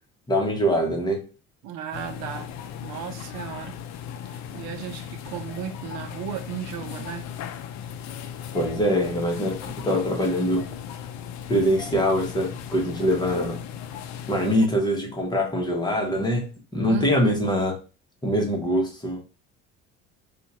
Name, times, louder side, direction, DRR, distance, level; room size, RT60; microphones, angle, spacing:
voice 1, 0.3-1.3 8.5-10.7 11.5-13.6 14.3-17.8 18.2-19.2, equal, 15° left, 1.2 m, -23 dB
voice 2, 1.6-2.5 2.8-3.8 4.2-7.3 16.9-17.4, right 8 dB, 70° right, 0.7 m, -35 dB
sound 1, 1.9-14.7, left 8 dB, 65° left, 0.5 m, -37 dB
2.8 x 2.5 x 4.3 m
supercardioid pair, 95°, 29 cm